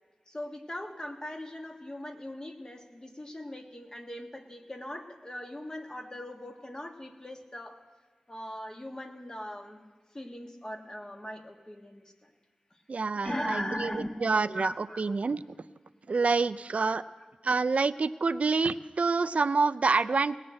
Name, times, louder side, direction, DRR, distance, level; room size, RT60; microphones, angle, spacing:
voice 1, 0.3-7.8 8.3-9.8 10.1-12.3 13.2-14.1 14.5-15.0 17.0-17.2, left 1 dB, 30° left, 4 dB, 1.4 m, -39 dB
voice 2, 12.9-15.4 16.1-17.0 17.4-20.4, right 4 dB, 60° right, 13 dB, 0.4 m, -27 dB
18.0 x 6.5 x 8.8 m, 1.5 s
wide cardioid pair, 65°, 3 cm